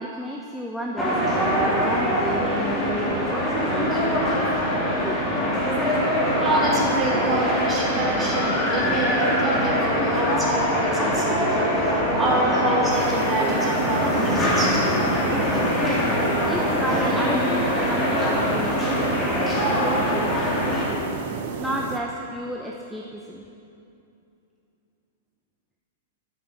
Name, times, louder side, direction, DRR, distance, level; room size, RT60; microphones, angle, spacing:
voice 1, 0.0-4.6 5.0-5.2 15.8-21.1 21.6-23.4, equal, ahead, -1 dB, 0.8 m, -32 dB
sound 1, 1.0-20.9, equal, 15° left, 3.2 m, -23 dB
voice 2, 6.3-11.5 11.8-11.9 12.1-14.8, right 2 dB, 20° right, -5 dB, 3.2 m, -27 dB
sound 2, 12.9-22.0, right 7 dB, 55° right, 0.8 m, -34 dB
12.0 x 7.4 x 6.0 m, 2.7 s
hypercardioid pair, 105°, 0 cm